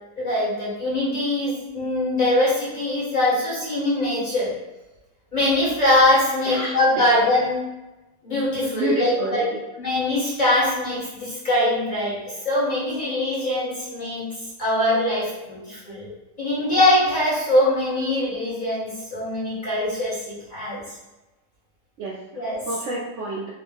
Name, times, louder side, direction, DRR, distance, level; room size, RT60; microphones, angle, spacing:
voice 1, 0.2-4.5 5.3-7.6 8.2-9.4 9.8-12.2 12.4-14.3 14.6-16.1 16.4-20.8 22.4-22.6, left 1 dB, 35° left, -9 dB, 1.4 m, -22 dB
voice 2, 6.5-7.1 8.7-9.6 16.6-16.7 22.0-23.5, right 3 dB, 65° right, -3 dB, 0.7 m, -30 dB
3.8 x 2.5 x 3.3 m, 1.0 s
omnidirectional pair, 1.6 m